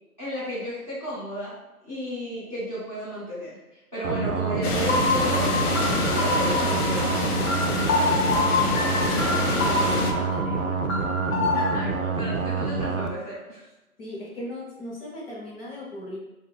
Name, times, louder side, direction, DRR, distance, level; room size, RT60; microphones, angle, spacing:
voice 1, 0.2-1.6 1.8-7.5 11.5-13.6, equal, ahead, -19 dB, 0.7 m, -33 dB
sound 1, 4.0-13.1, right 4 dB, 60° right, 0.5 m, -27 dB
sound 2, 4.6-10.1, left 4 dB, 80° left, 0.7 m, -28 dB
sound 3, 4.9-11.7, left 2 dB, 60° left, 1.1 m, -27 dB
voice 2, 7.8-10.9 14.0-16.2, equal, 40° left, -4 dB, 0.9 m, -38 dB
2.5 x 2.3 x 3.5 m, 0.99 s
figure-of-eight pair, 155°, 45 cm